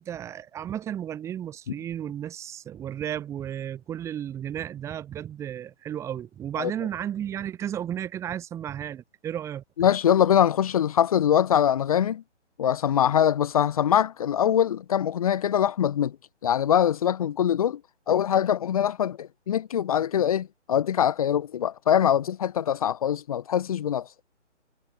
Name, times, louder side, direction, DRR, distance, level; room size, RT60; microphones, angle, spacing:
voice 1, 0.0-9.6, right 10 dB, 10° right, 7.2 m, -33 dB
voice 2, 9.8-12.2 12.6-16.1 16.4-17.8 18.1-24.1, left 9 dB, 30° left, 4.4 m, -23 dB
hypercardioid pair, 165°, 36 cm